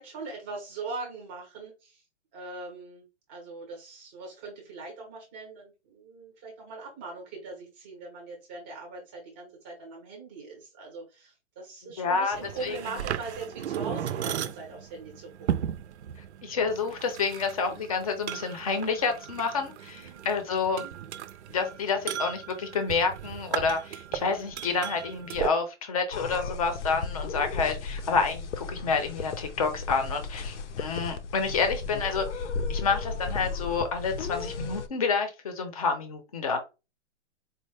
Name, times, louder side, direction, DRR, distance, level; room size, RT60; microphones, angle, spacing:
voice 1, 0.0-2.0 2.3-15.7 19.8-20.9, right 3 dB, 10° right, -1 dB, 0.6 m, -41 dB
voice 2, 12.0-12.4 12.6-12.8 16.4-20.8 21.5-36.6, left 5 dB, 30° left, 7 dB, 0.6 m, -29 dB
sound 1, 12.3-25.5, right 10 dB, 65° right, 0.5 m, -36 dB
sound 2, 26.1-34.9, left 4 dB, 75° left, 0.7 m, -35 dB
4.4 x 2.1 x 3.2 m, 0.28 s
hypercardioid pair, 170°, 36 cm